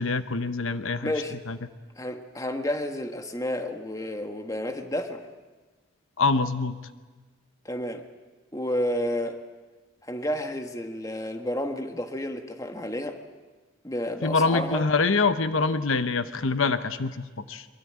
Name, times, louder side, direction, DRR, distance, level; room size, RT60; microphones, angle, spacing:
voice 1, 0.0-1.1 1.5-1.6 6.2-6.8 14.2-17.7, left 4 dB, 70° left, 11 dB, 0.9 m, -25 dB
voice 2, 1.0-1.3 2.0-5.3 7.6-8.0 8.5-9.4 10.0-13.2 13.8-14.9, left 1 dB, 15° left, 6 dB, 1.4 m, -31 dB
23.0 x 23.0 x 8.7 m, 1.3 s
head